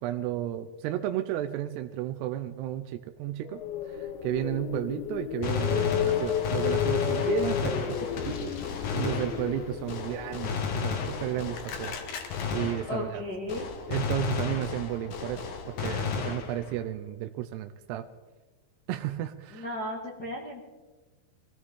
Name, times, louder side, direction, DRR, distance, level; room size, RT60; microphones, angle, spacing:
voice 1, 0.0-3.6 3.9-8.6 8.9-12.0 12.5-13.2 13.9-18.1 18.9-19.7, right 13 dB, 80° right, 7 dB, 2.5 m, -33 dB
sound 1, 3.5-11.5, left 10 dB, 85° left, 3.0 m, -32 dB
Gunshot gunfire, 5.4-13.2 13.5-16.8, left 6 dB, 65° left, 2.1 m, -33 dB
voice 2, 12.9-13.7 19.5-20.6, left 1 dB, 45° left, -3 dB, 1.3 m, -35 dB
23.0 x 16.0 x 3.7 m, 1.2 s
omnidirectional pair, 5.3 m